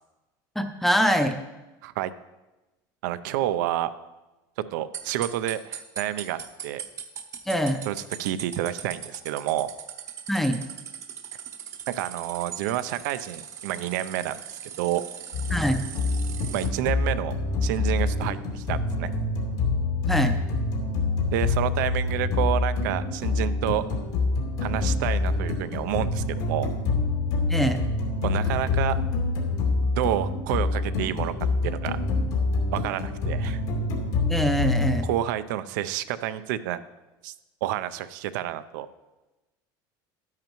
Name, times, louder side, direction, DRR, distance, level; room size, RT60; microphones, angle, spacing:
voice 1, 0.6-1.4 7.5-7.8 10.3-10.6 15.5-15.8 20.1-20.4 27.5-27.8 34.3-35.1, equal, 5° left, 7 dB, 0.5 m, -23 dB
voice 2, 3.0-3.9 4.7-6.8 7.9-9.7 11.9-15.0 16.5-17.3 17.6-19.1 21.3-24.0 24.6-26.7 28.2-29.0 30.0-31.3 31.6-32.0 32.7-33.6 35.0-36.8 37.2-37.3 37.6-38.9, right 12 dB, 80° right, 12 dB, 0.5 m, -29 dB
sound 1, 4.9-16.7, right 8 dB, 30° right, 0.7 m, -39 dB
sound 2, 15.3-35.0, left 3 dB, 75° left, 2.6 m, -26 dB
11.5 x 10.5 x 3.1 m, 1.1 s
cardioid pair, 170°, 10 cm